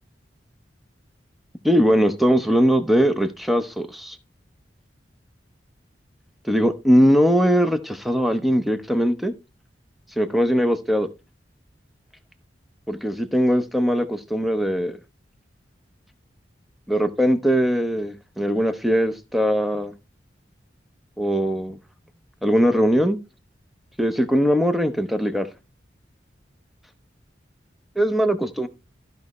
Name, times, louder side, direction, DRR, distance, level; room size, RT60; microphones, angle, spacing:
voice 1, 1.6-4.2 6.5-9.3 10.2-11.1 12.9-15.0 16.9-19.9 21.2-21.8 22.4-23.2 24.0-25.5 28.0-28.7, equal, ahead, 0.8 m, -20 dB
14.0 x 5.4 x 3.1 m
head